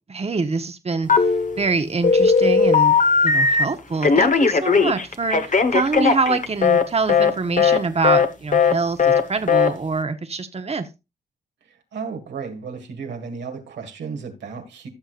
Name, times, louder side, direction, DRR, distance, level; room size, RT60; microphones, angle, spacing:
voice 1, 0.1-1.1 1.6-3.0 3.2-10.9, right 4 dB, 35° right, 1.2 m, -25 dB
Telephone, 1.1-1.7 2.0-3.6 4.0-6.8 7.1-7.3 7.6-7.8 8.0-8.3 8.5-8.7 9.0-9.2 9.5-9.7, left 5 dB, 45° left, 1.3 m, -17 dB
voice 2, 11.7-14.9, right 5 dB, 90° right, 1.9 m, -34 dB
15.5 x 6.3 x 2.5 m
cardioid pair, 55°, 18 cm